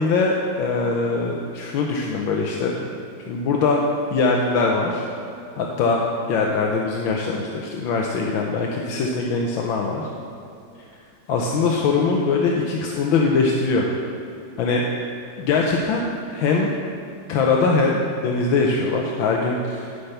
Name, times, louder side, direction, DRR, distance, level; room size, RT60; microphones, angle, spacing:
voice 1, 0.0-2.9 3.3-3.8 4.1-5.0 5.6-6.0 6.3-10.1 11.3-13.9 14.6-14.8 15.4-16.7 17.3-19.9, left 4 dB, 80° left, -1 dB, 1.6 m, -22 dB
11.5 x 5.8 x 6.6 m, 2.6 s
omnidirectional pair, 2.2 m